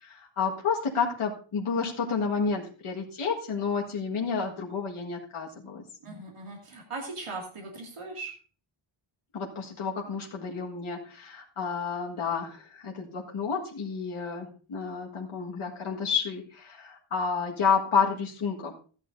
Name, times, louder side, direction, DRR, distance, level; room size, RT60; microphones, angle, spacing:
voice 1, 0.0-5.8 9.3-18.7, left 5 dB, 75° left, -2 dB, 1.8 m, -30 dB
voice 2, 6.0-8.3, right 3 dB, 85° right, -1 dB, 2.6 m, -39 dB
14.5 x 10.5 x 2.7 m, 0.39 s
wide cardioid pair, 175°, 50 cm